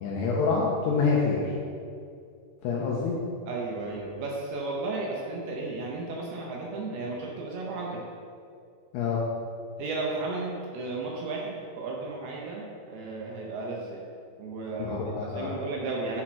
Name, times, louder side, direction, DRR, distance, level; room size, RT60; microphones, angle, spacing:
voice 1, 0.0-1.5 2.6-3.2 8.9-9.2 14.9-15.5, left 4 dB, 85° left, -4 dB, 2.4 m, -26 dB
voice 2, 3.5-8.0 9.8-14.0 14.4-16.2, right 3 dB, 80° right, -2 dB, 2.3 m, -34 dB
10.0 x 4.4 x 4.3 m, 2.3 s
omnidirectional pair, 5.6 m